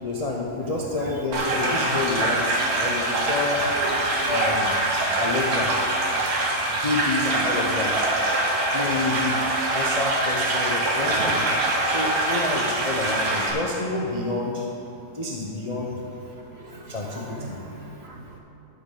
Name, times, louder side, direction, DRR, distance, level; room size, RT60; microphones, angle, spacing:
voice 1, 0.0-3.6 4.3-4.8 5.2-5.7 6.7-8.1 8.7-11.5 11.8-14.7 15.1-15.9 16.9-17.6, left 2 dB, 40° left, -3 dB, 0.5 m, -29 dB
sound 1, 1.3-13.5, right 2 dB, 65° right, 1.6 m, -24 dB
voice 2, 3.6-4.4 16.5-18.4, right 2 dB, 50° right, 0 dB, 0.9 m, -38 dB
13.0 x 7.4 x 3.8 m, 2.9 s
omnidirectional pair, 1.7 m